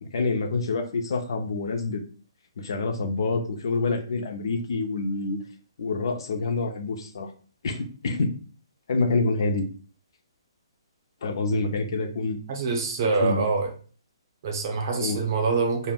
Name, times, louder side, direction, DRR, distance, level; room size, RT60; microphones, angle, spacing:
voice 1, 0.0-2.0 2.6-5.4 5.8-7.3 7.6-8.3 8.9-9.6 11.2-12.4 13.2-13.4 15.0-15.2, left 3 dB, 60° left, 5 dB, 0.5 m, -27 dB
voice 2, 12.5-13.7 14.4-15.9, right 4 dB, 40° right, 2 dB, 0.6 m, -25 dB
2.1 x 2.1 x 3.5 m, 0.41 s
hypercardioid pair, 160°, 3 cm